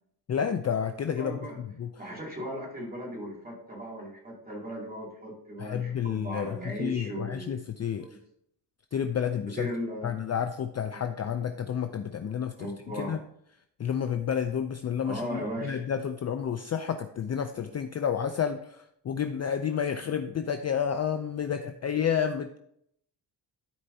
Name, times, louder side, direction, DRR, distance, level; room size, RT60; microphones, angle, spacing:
voice 1, 0.3-1.4 1.8-1.9 5.6-8.1 8.9-9.7 10.0-12.5 13.0-13.2 13.8-22.6, left 8 dB, 40° left, 7 dB, 0.4 m, -30 dB
voice 2, 1.1-1.6 2.0-7.6 8.0-8.2 9.5-10.1 10.9-11.0 12.6-13.2 15.0-15.9, equal, 20° right, -3 dB, 2.6 m, -37 dB
13.0 x 4.5 x 2.7 m, 0.72 s
wide cardioid pair, 150°, 44 cm